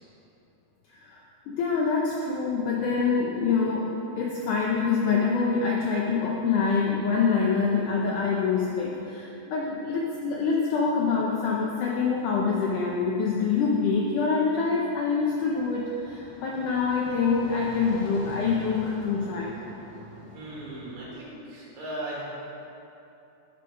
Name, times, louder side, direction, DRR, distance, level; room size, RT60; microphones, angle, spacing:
voice 1, 1.0-19.5, left 5 dB, 85° left, -2 dB, 1.7 m, -25 dB
sound 1, 15.2-21.2, left 1 dB, 50° left, 2.1 m, -44 dB
voice 2, 20.3-22.2, right 1 dB, 85° right, -6 dB, 4.1 m, -37 dB
11.5 x 5.0 x 5.1 m, 3.0 s
omnidirectional pair, 4.4 m